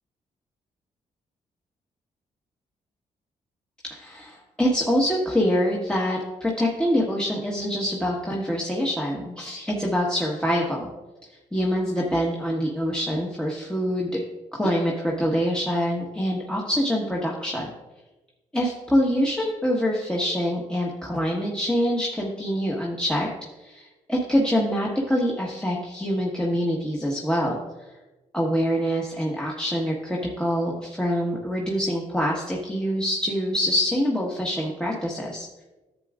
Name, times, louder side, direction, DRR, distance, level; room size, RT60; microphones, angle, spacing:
voice 1, 3.9-10.9 11.5-14.2 14.5-17.7 18.5-23.3 23.6-27.9 28.3-35.5, equal, 5° left, -3 dB, 1.4 m, -25 dB
10.5 x 7.7 x 2.5 m, 1.1 s
supercardioid pair, 50°, 15 cm